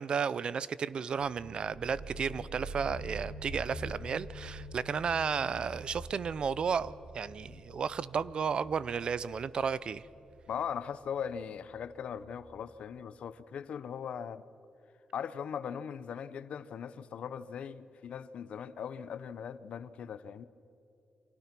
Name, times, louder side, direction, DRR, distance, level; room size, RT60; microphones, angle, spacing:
voice 1, 0.0-10.0, right 6 dB, 45° right, 0.5 m, -33 dB
sound 1, 1.2-12.6, right 1 dB, 80° right, 6.2 m, -46 dB
voice 2, 10.5-14.4 15.1-20.5, left 7 dB, 65° left, 0.8 m, -39 dB
29.5 x 24.0 x 6.0 m
wide cardioid pair, 150°, 2 cm